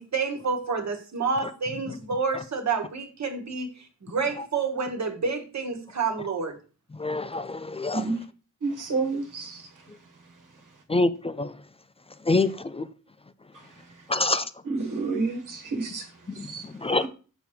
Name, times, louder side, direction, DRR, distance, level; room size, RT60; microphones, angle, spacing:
voice 1, 0.0-6.6, right 4 dB, 55° right, 1.4 m, -29 dB
voice 2, 7.0-8.1 10.9-11.5 12.3-12.9 14.1-14.5 16.4-17.1, left 2 dB, 20° left, 0.3 m, -26 dB
voice 3, 8.6-9.6 14.7-16.0 16.5-16.6, right 3 dB, 75° right, 1.5 m, -29 dB
6.8 x 6.2 x 3.1 m
wide cardioid pair, 130°, 32 cm